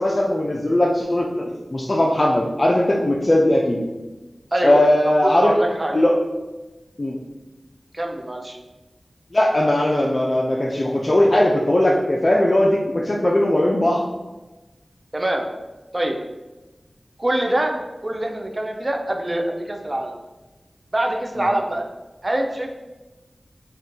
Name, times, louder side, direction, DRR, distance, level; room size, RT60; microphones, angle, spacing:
voice 1, 0.0-3.8 4.6-5.5 5.9-6.2 7.0-7.2 9.3-14.0 21.4-21.5, left 1 dB, 40° left, -2 dB, 0.4 m, -19 dB
voice 2, 4.5-5.1 5.4-5.9 7.9-8.6 15.1-15.4 15.9-16.2 17.2-17.7 18.0-20.1 20.9-21.8 22.2-22.7, right 1 dB, 40° right, 2 dB, 0.5 m, -24 dB
2.6 x 2.4 x 3.7 m, 1.1 s
wide cardioid pair, 45°, 0 cm